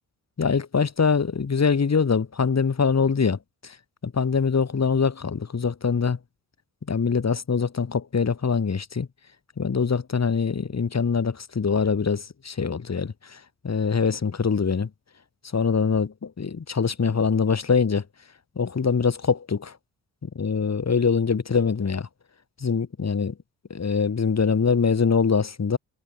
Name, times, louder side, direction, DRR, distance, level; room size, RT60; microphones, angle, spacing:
voice 1, 0.4-3.8 4.0-6.2 6.9-9.1 9.6-14.9 15.5-18.0 18.6-19.7 20.2-22.1 22.6-23.3 23.7-25.8, left 5 dB, 40° left, 2.6 m, -23 dB
supercardioid pair, 45°, 42 cm